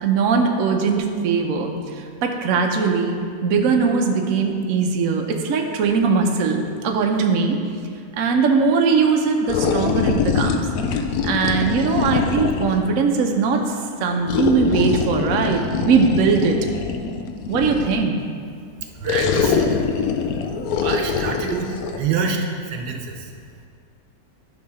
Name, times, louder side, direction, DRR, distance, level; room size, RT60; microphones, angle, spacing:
voice 1, 0.0-7.6 8.2-10.6 11.2-16.6 17.5-18.2, right 5 dB, 60° right, 2 dB, 1.0 m, -20 dB
sound 1, 9.5-12.9 14.3-18.1 19.1-22.0, left 6 dB, 70° left, 1.0 m, -23 dB
voice 2, 18.9-19.7 20.8-23.3, right 5 dB, 80° right, 3 dB, 1.4 m, -26 dB
11.5 x 3.8 x 5.6 m, 2.2 s
omnidirectional pair, 1.8 m